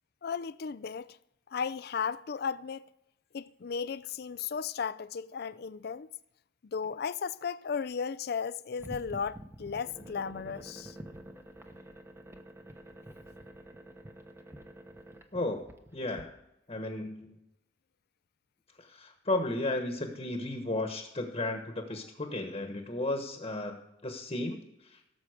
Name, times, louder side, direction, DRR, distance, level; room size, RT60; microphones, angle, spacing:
voice 1, 0.2-1.2 1.5-2.9 3.3-6.1 6.7-11.0, left 6 dB, 60° left, 0.4 m, -35 dB
sound 1, 8.8-16.2, right 1 dB, 15° right, 1.0 m, -48 dB
voice 2, 15.3-15.6 15.9-16.3 16.7-17.3 18.8-24.6, left 2 dB, 35° left, 1.2 m, -34 dB
17.0 x 7.3 x 5.0 m
head